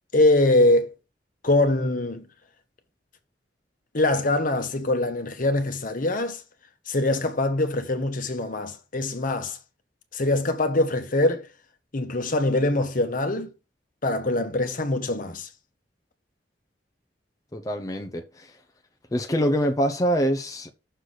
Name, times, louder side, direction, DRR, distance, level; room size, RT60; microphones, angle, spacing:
voice 1, 0.1-0.9 1.4-2.2 3.9-6.4 6.9-9.6 10.1-11.5 11.9-13.5 14.0-15.5, left 2 dB, 50° left, 1.1 m, -23 dB
voice 2, 17.5-18.5 19.1-20.7, equal, 20° left, 0.7 m, -25 dB
6.6 x 4.1 x 6.3 m
head